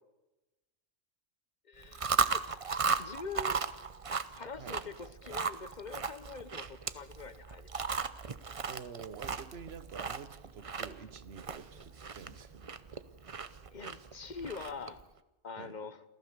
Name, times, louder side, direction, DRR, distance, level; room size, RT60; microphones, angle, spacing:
voice 1, 1.7-2.4 3.0-3.7 4.3-7.8 13.7-15.0 15.4-16.0, left 4 dB, 40° left, 13 dB, 1.1 m, -44 dB
Chewing mastication, 1.8-15.0, right 5 dB, 35° right, 0.6 m, -36 dB
voice 2, 4.6-4.9 8.6-12.7 15.6-15.8, right 6 dB, 55° right, 14 dB, 1.2 m, -48 dB
27.5 x 15.0 x 6.9 m, 1.0 s
omnidirectional pair, 1.3 m